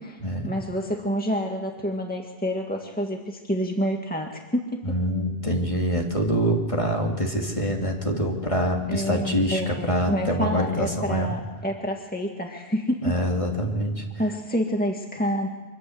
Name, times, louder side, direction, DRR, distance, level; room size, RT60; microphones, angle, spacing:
voice 1, 0.0-4.8 8.9-13.2 14.2-15.5, equal, 10° left, 1 dB, 2.0 m, -28 dB
voice 2, 4.8-11.3 13.0-14.0, equal, 30° left, 1 dB, 2.9 m, -25 dB
25.0 x 20.0 x 8.0 m, 1.2 s
omnidirectional pair, 1.1 m